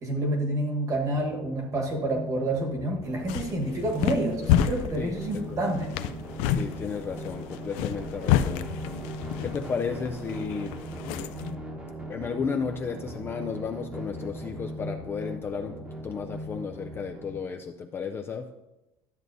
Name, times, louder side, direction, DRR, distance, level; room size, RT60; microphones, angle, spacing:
voice 1, 0.0-5.9, right 1 dB, 30° right, 2 dB, 1.3 m, -28 dB
sound 1, 0.9-17.4, right 1 dB, 10° right, 1.0 m, -39 dB
sound 2, 3.0-11.6, left 10 dB, 80° left, 0.5 m, -30 dB
voice 2, 5.0-5.7 6.5-8.7 9.4-10.7 12.1-18.5, left 6 dB, 20° left, 4 dB, 0.3 m, -33 dB
12.5 x 7.6 x 2.6 m, 0.98 s
cardioid pair, 170°, 11 cm